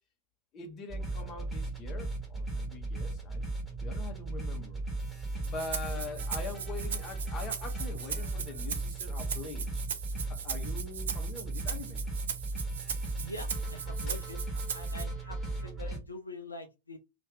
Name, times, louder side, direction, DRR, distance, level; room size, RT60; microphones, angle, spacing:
voice 1, 0.5-3.4 3.8-4.8 5.4-9.8 10.2-12.0 14.1-14.2, left 4 dB, 30° left, 1.0 m, -43 dB
sound 1, 0.9-16.0, right 2 dB, 5° right, 1.4 m, -36 dB
Rattle (instrument), 5.4-15.0, right 7 dB, 65° right, 0.5 m, -39 dB
voice 2, 13.2-17.0, left 2 dB, 80° left, 0.5 m, -44 dB
2.7 x 2.5 x 3.4 m
figure-of-eight pair, 90°, 0 cm